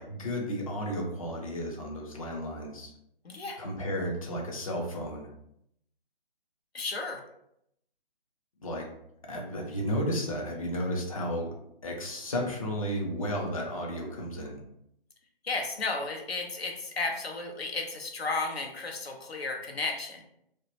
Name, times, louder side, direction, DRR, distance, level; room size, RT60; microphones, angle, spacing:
voice 1, 0.0-2.9 3.6-5.3 8.6-8.9 9.3-11.5 11.8-14.6, equal, 35° left, 0 dB, 0.5 m, -33 dB
voice 2, 3.2-3.6 6.7-7.2 15.4-20.2, left 3 dB, 85° left, 2 dB, 0.6 m, -33 dB
2.1 x 2.0 x 2.8 m, 0.76 s
figure-of-eight pair, 145°, 30 cm